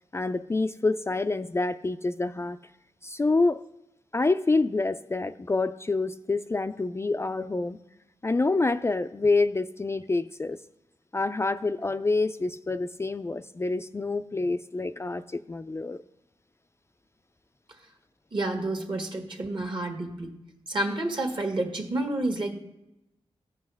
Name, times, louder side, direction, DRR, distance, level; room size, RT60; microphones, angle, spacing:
voice 1, 0.1-2.6 3.0-3.6 4.1-7.8 8.2-10.6 11.1-16.0, left 3 dB, 25° left, 0.3 m, -27 dB
voice 2, 18.3-20.3 20.7-22.5, right 2 dB, 50° right, 1.6 m, -29 dB
14.5 x 5.4 x 3.4 m
cardioid pair, 55°, 11 cm